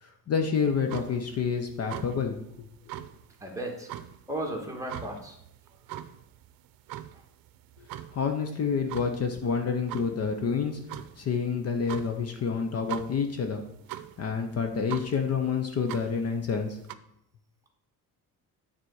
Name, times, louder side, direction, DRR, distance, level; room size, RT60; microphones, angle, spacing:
voice 1, 0.0-2.4 7.8-7.9 8.1-10.8 11.2-13.6 14.2-16.8, left 6 dB, 45° left, 5 dB, 0.9 m, -28 dB
sound 1, 0.6-16.9, right 12 dB, 75° right, 0.6 m, -43 dB
voice 2, 3.4-3.9 4.3-5.4, right 1 dB, 10° right, 0 dB, 1.6 m, -35 dB
9.3 x 4.2 x 6.4 m, 0.80 s
cardioid pair, 150°, 35 cm